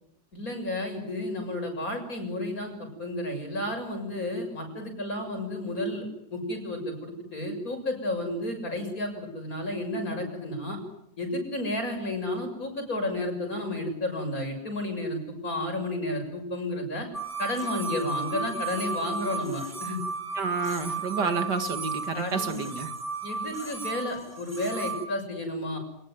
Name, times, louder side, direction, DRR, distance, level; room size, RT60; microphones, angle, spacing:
voice 1, 0.3-6.0 6.3-10.8 11.2-17.1 17.4-20.0 21.2-21.4 22.1-22.5 23.2-25.8, left 1 dB, 55° left, 5 dB, 7.4 m, -32 dB
sound 1, 17.1-25.0, right 4 dB, 10° right, 4.0 m, -34 dB
voice 2, 20.4-22.9, right 5 dB, 75° right, 8 dB, 2.7 m, -29 dB
29.0 x 20.0 x 9.5 m, 0.78 s
omnidirectional pair, 1.9 m